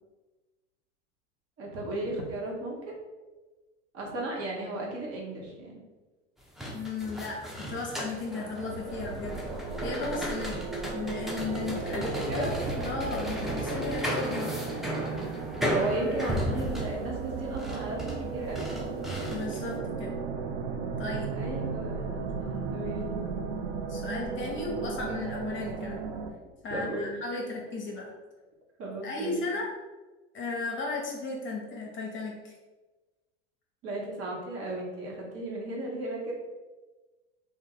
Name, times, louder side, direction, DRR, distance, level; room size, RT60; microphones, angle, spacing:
voice 1, 1.6-3.0 3.9-5.8 11.9-12.6 15.7-18.9 21.3-23.3 26.7-27.2 28.8-29.4 33.8-36.3, right 1 dB, 40° right, -2 dB, 1.0 m, -35 dB
sound 1, 6.4-19.7, equal, ahead, 0.3 m, -35 dB
voice 2, 6.7-9.4 9.8-10.6 10.9-14.6 19.3-20.1 21.0-21.3 23.9-26.0 26.6-28.1 29.0-29.7 30.3-32.5, left 3 dB, 35° left, -1 dB, 0.8 m, -35 dB
sound 2, 8.3-26.3, right 5 dB, 65° right, 0.5 m, -36 dB
2.6 x 2.1 x 3.9 m, 1.2 s
hypercardioid pair, 95°, 35 cm